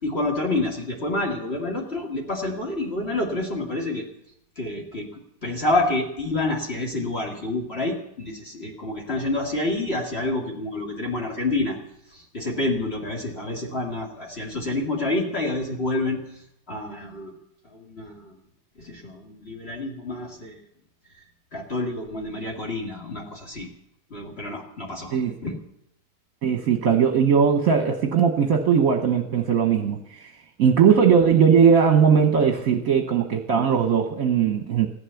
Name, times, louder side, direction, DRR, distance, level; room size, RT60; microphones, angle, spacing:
voice 1, 0.0-4.0 4.6-11.8 12.1-16.4 16.7-17.3 17.6-18.4 18.8-20.6 21.5-23.7 24.1-25.6, left 2 dB, 35° left, -1 dB, 2.4 m, -28 dB
voice 2, 26.4-30.3 30.6-34.9, right 7 dB, 55° right, 5 dB, 1.4 m, -19 dB
15.5 x 11.0 x 7.0 m, 0.80 s
omnidirectional pair, 1.8 m